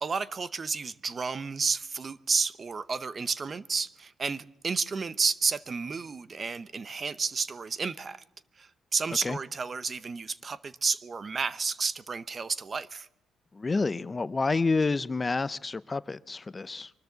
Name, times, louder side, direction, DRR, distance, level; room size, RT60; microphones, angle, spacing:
voice 1, 0.0-8.2 8.6-13.1, right 5 dB, 40° right, 0.7 m, -31 dB
voice 2, 13.5-16.9, left 3 dB, 25° left, 0.5 m, -29 dB
24.0 x 13.0 x 4.0 m
cardioid pair, 90°, 0 cm